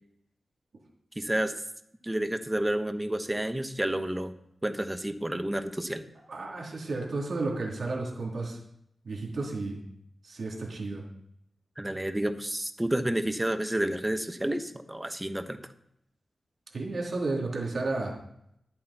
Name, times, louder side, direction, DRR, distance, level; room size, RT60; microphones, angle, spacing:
voice 1, 1.2-1.5 2.0-4.3 4.6-6.0 11.8-15.6, right 1 dB, 15° right, 8 dB, 1.2 m, -30 dB
voice 2, 6.3-8.6 9.0-9.8 10.2-11.0 16.7-18.1, right 3 dB, 65° right, -2 dB, 3.5 m, -32 dB
12.5 x 8.5 x 4.5 m, 0.73 s
cardioid pair, 50°, 0 cm